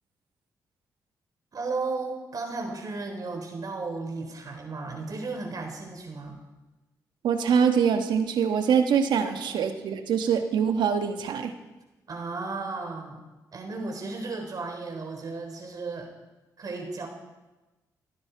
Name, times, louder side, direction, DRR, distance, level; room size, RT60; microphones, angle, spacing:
voice 1, 1.5-6.4 12.1-13.2 13.5-16.1 16.6-17.1, right 3 dB, 55° right, 3 dB, 4.0 m, -34 dB
voice 2, 7.2-11.5, right 7 dB, 80° right, 7 dB, 1.3 m, -24 dB
28.0 x 9.9 x 4.7 m, 1.1 s
supercardioid pair, 60°, 8 cm